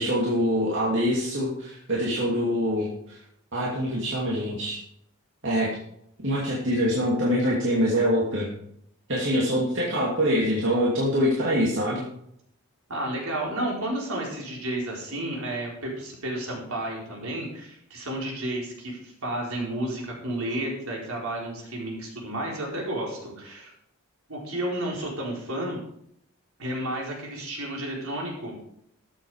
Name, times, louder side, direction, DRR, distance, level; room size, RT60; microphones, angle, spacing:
voice 1, 0.0-3.2 3.5-4.8 5.4-5.8 6.2-8.5 9.1-12.0, equal, 55° right, -5 dB, 2.8 m, -24 dB
voice 2, 12.9-23.7 24.3-25.8 26.6-28.5, right 1 dB, 75° right, -2 dB, 4.5 m, -32 dB
13.5 x 8.5 x 5.0 m, 0.72 s
head